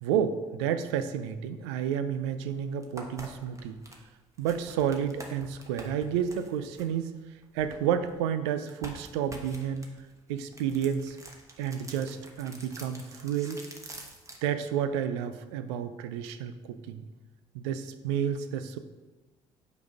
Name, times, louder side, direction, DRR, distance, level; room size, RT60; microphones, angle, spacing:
voice 1, 0.0-3.8 4.4-7.1 7.5-9.9 10.3-11.2 11.6-13.6 14.4-17.0 17.5-18.8, right 8 dB, 85° right, 10 dB, 0.4 m, -30 dB
sound 1, 2.3-2.4 2.8-8.2 8.7-14.5, right 1 dB, 20° right, 1.2 m, -47 dB
5.4 x 4.1 x 5.1 m, 1.2 s
hypercardioid pair, 55°, 14 cm